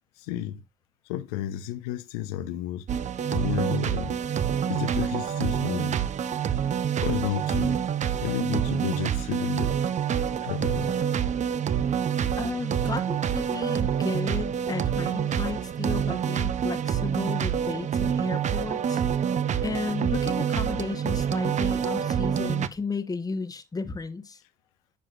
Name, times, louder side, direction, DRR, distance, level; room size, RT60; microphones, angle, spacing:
voice 1, 0.2-0.6 1.1-2.9 3.3-4.2 4.6-6.0 7.0-7.8 8.2-9.7 10.4-11.2, left 12 dB, 85° left, 0.8 m, -32 dB
sound 1, 2.9-22.7, right 8 dB, 40° right, 0.6 m, -27 dB
voice 2, 12.4-19.0 19.6-24.4, left 4 dB, 20° left, 1.0 m, -33 dB
10.0 x 5.0 x 2.5 m
hypercardioid pair, 65°, 18 cm